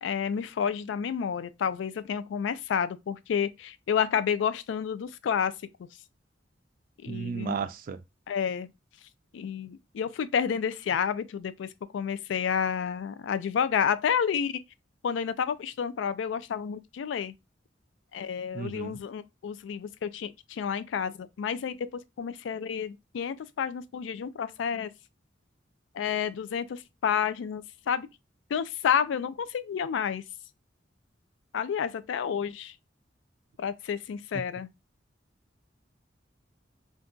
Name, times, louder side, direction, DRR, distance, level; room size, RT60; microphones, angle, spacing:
voice 1, 0.0-5.5 7.0-7.6 8.3-8.7 9.3-14.5 15.0-17.3 18.1-24.9 25.9-28.1 28.5-30.2 31.5-32.7 33.6-34.7, left 7 dB, 90° left, 0.3 m, -30 dB
voice 2, 7.1-8.0 18.5-19.0 34.3-34.4, right 6 dB, 50° right, 0.3 m, -34 dB
2.6 x 2.3 x 3.6 m
head